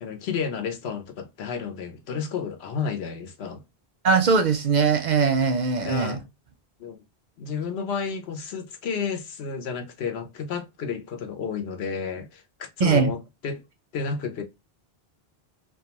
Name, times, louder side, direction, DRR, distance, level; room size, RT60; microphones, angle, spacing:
voice 1, 0.0-3.6 5.8-6.2 6.8-7.0 7.4-13.6 13.9-14.4, left 5 dB, 90° left, 0.9 m, -31 dB
voice 2, 4.0-6.2 12.8-13.1, right 5 dB, 55° right, 0.5 m, -21 dB
2.3 x 2.3 x 2.8 m
omnidirectional pair, 1.0 m